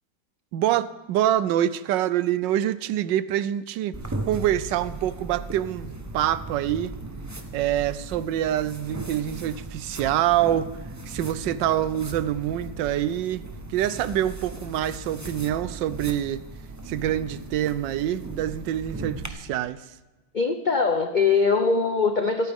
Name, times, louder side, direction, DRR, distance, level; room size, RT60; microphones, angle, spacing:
voice 1, 0.5-3.9 4.3-6.9 7.5-10.7 11.1-13.4 13.7-16.4 16.9-19.8, right 12 dB, 85° right, 15 dB, 1.3 m, -25 dB
sound 1, 3.9-19.3, right 2 dB, 20° right, 0.4 m, -37 dB
voice 2, 20.3-22.5, left 4 dB, 90° left, 6 dB, 0.4 m, -22 dB
27.5 x 9.1 x 3.6 m, 1.2 s
omnidirectional pair, 1.9 m